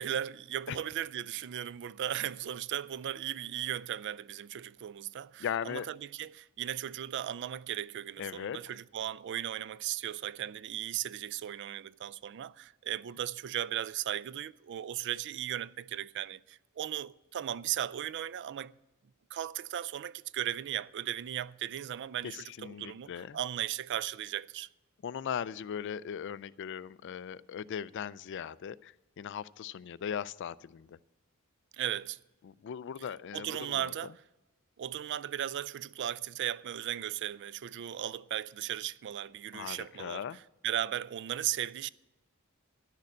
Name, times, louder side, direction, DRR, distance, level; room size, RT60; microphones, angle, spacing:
voice 1, 0.0-18.7 19.3-24.7 31.8-32.2 33.3-34.1 34.8-40.2 40.6-41.9, right 11 dB, 55° right, 0.3 m, -36 dB
voice 2, 5.4-5.9 8.2-8.6 22.2-23.4 25.0-31.0 32.4-33.9 39.5-40.4, left 8 dB, 55° left, 0.3 m, -39 dB
11.5 x 6.6 x 8.3 m
head